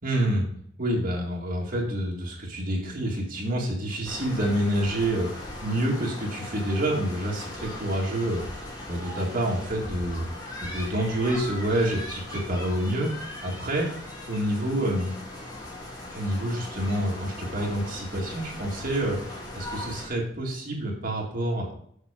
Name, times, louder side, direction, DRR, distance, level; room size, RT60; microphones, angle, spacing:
voice 1, 0.0-0.5 0.8-8.4 8.9-10.2 10.6-13.9 14.3-15.1 16.1-21.7, right 1 dB, 50° right, -2 dB, 1.9 m, -28 dB
sound 1, 4.0-20.1, left 1 dB, 20° left, 2.0 m, -39 dB
7.0 x 6.2 x 4.9 m, 0.65 s
head